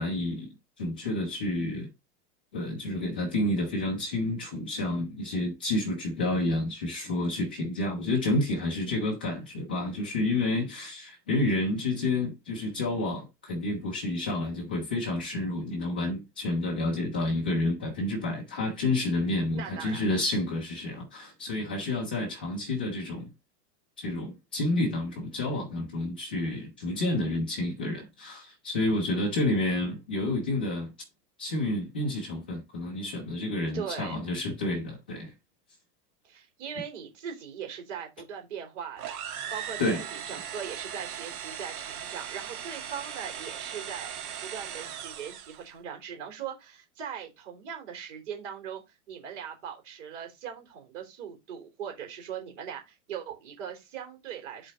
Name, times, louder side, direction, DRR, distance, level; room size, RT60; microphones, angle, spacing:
voice 1, 0.0-1.9 2.5-23.3 24.0-30.9 31.4-35.3 39.8-40.0, left 2 dB, 10° left, 0.4 m, -29 dB
voice 2, 19.5-20.2 33.7-34.2 36.2-44.1 44.4-54.7, right 8 dB, 45° right, 3.4 m, -40 dB
sound 1, 39.0-45.7, right 9 dB, 75° right, 1.8 m, -38 dB
8.1 x 4.1 x 3.7 m
supercardioid pair, 180°, 44 cm